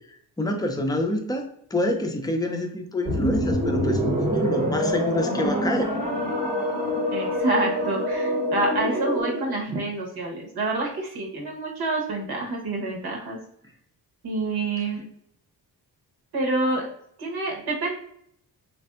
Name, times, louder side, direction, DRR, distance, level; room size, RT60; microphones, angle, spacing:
voice 1, 0.4-5.9, left 1 dB, 10° left, 3 dB, 0.5 m, -27 dB
sound 1, 3.1-9.5, equal, 15° right, 0.8 m, -25 dB
voice 2, 7.1-13.4 14.2-15.0 16.3-16.8 17.2-17.9, right 2 dB, 70° right, 0 dB, 1.1 m, -27 dB
3.3 x 2.6 x 2.3 m, 0.68 s
cardioid pair, 80°, 40 cm